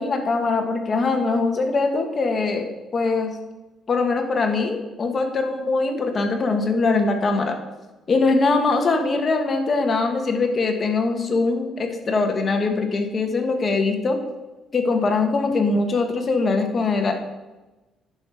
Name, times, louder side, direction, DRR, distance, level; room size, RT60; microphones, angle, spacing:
voice 1, 0.0-3.3 3.9-7.6 8.1-14.2 14.7-17.1, left 3 dB, 35° left, 4 dB, 1.5 m, -22 dB
10.5 x 6.0 x 4.9 m, 1.1 s
cardioid pair, 115°, 0 cm